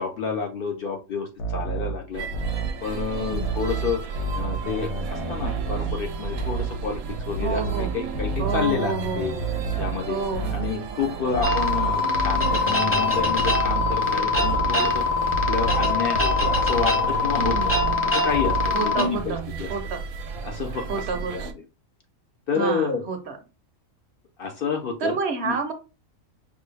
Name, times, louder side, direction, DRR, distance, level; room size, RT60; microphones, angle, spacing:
voice 1, 0.0-2.3 2.8-4.0 4.3-9.3 9.8-10.2 10.5-15.0 15.5-17.6 18.0-19.7 20.4-21.1 21.3-21.4 22.5-23.0 24.4-25.2 25.4-25.6, left 5 dB, 55° left, 2 dB, 0.6 m, -29 dB
sound 1, 1.4-2.8 3.3-6.1 6.3-6.8 7.3-10.8 11.3-14.1 14.3-14.8 15.3-18.1 18.3-18.8, right 3 dB, 85° left, 1.3 m, -30 dB
sound 2, 2.1-21.5, right 6 dB, 85° right, 1.0 m, -34 dB
voice 2, 7.4-7.9 8.4-9.5 10.1-10.5 17.3-17.7 18.7-19.4 19.7-20.0 20.9-21.5 22.5-23.4 25.0-25.7, right 4 dB, 60° right, 6 dB, 0.8 m, -29 dB
sound 3, 11.4-19.0, left 4 dB, 15° left, 0.6 m, -23 dB
5.2 x 2.2 x 3.3 m, 0.31 s
omnidirectional pair, 1.5 m